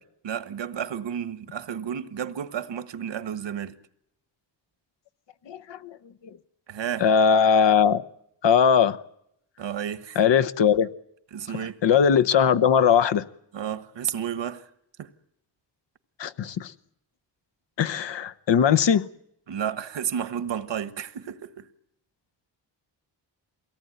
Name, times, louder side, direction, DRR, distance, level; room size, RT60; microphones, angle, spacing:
voice 1, 0.2-3.7 6.7-7.1 9.6-10.2 11.3-11.8 13.5-14.7 15.0-15.1 19.5-21.7, right 8 dB, 85° right, 1.4 m, -32 dB
voice 2, 5.5-6.0 7.0-8.0 8.4-9.0 10.2-10.9 11.6-13.2 16.2-16.7 17.8-19.1, left 7 dB, 80° left, 1.2 m, -20 dB
24.0 x 18.0 x 9.2 m
wide cardioid pair, 165°, 43 cm